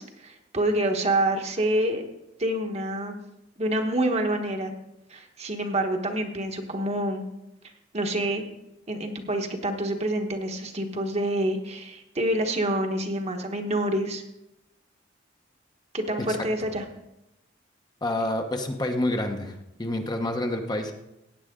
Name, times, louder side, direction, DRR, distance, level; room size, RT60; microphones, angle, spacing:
voice 1, 0.0-2.0 2.4-3.2 3.6-4.7 5.1-7.2 7.6-8.4 8.9-14.2 15.9-16.8, right 1 dB, 35° right, 4 dB, 1.3 m, -27 dB
voice 2, 18.0-20.9, left 1 dB, 25° left, 4 dB, 0.9 m, -28 dB
16.0 x 9.0 x 3.7 m, 0.88 s
head